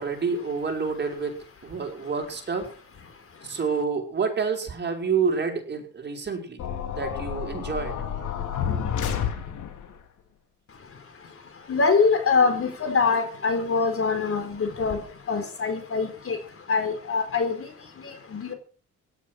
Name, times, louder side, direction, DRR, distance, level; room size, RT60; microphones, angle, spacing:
voice 1, 0.0-2.7 3.4-6.6 6.9-8.0, right 5 dB, 35° right, 3 dB, 5.4 m, -28 dB
sound 1, 6.6-9.9, left 8 dB, 80° left, 3.5 m, -30 dB
voice 2, 11.7-15.0 15.3-16.4 16.7-17.6 18.0-18.5, left 4 dB, 45° left, 8 dB, 4.5 m, -24 dB
16.5 x 11.0 x 6.2 m, 0.41 s
cardioid pair, 90°, 30 cm